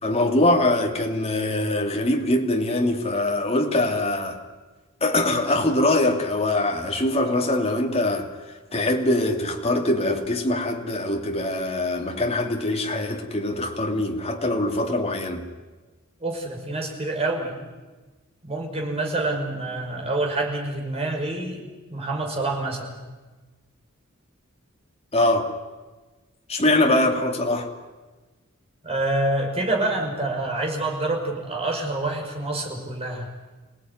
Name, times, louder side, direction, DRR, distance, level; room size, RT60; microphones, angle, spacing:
voice 1, 0.0-4.4 5.0-8.3 8.7-15.4 25.1-25.5 26.5-27.7, left 1 dB, 30° left, 2.9 m, -23 dB
voice 2, 16.2-17.7 18.4-21.6 21.9-23.0 28.8-33.3, right 2 dB, 30° right, 5.7 m, -27 dB
27.0 x 18.0 x 9.6 m
head